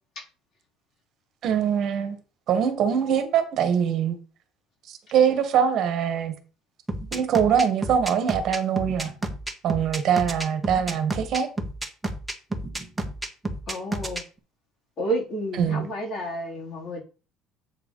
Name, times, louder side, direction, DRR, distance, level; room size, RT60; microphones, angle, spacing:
voice 1, 1.4-2.2 2.5-4.2 4.9-6.3 7.1-9.1 9.6-11.5 15.6-15.9, right 8 dB, 55° right, 1.7 m, -23 dB
sound 1, 6.9-14.2, right 2 dB, 10° right, 1.4 m, -30 dB
voice 2, 13.7-14.2 15.0-17.0, right 1 dB, 40° left, 3.9 m, -30 dB
8.5 x 4.7 x 5.5 m
cardioid pair, 110°, 0 cm